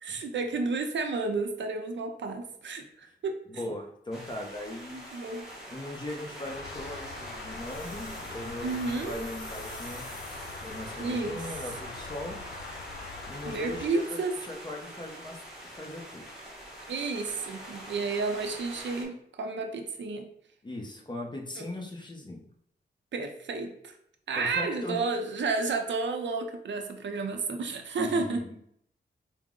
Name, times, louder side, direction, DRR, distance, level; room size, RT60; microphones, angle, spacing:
voice 1, 0.0-3.3 4.9-5.5 8.6-9.2 11.0-11.4 13.5-14.3 16.9-20.3 21.6-21.7 23.1-23.9 24.3-28.4, right 3 dB, 85° right, 4 dB, 0.6 m, -31 dB
voice 2, 3.6-5.0 5.7-10.1 10.6-12.4 13.3-15.4 15.6-16.2 20.6-22.4 24.4-25.0 28.0-28.5, left 1 dB, 25° left, 1 dB, 0.7 m, -39 dB
sound 1, 4.1-19.0, equal, ahead, 1.0 m, -44 dB
sound 2, 6.4-13.9, left 4 dB, 65° left, 0.4 m, -43 dB
sound 3, 7.5-11.2, left 2 dB, 50° left, 1.5 m, -50 dB
4.5 x 2.0 x 3.7 m, 0.70 s
wide cardioid pair, 135°, 18 cm